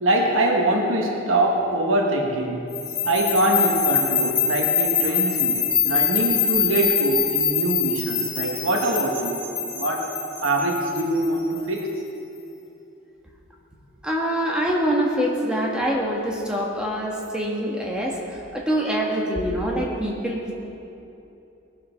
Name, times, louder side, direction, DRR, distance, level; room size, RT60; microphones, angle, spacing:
voice 1, 0.0-2.6 3.0-9.4 9.7-10.1 10.4-11.9, right 1 dB, 85° right, 0 dB, 1.5 m, -23 dB
sound 1, 2.7-11.8, left 7 dB, 25° left, 3.2 m, -24 dB
voice 2, 14.0-20.5, equal, 5° right, -2 dB, 1.6 m, -25 dB
20.0 x 7.5 x 5.8 m, 2.9 s
head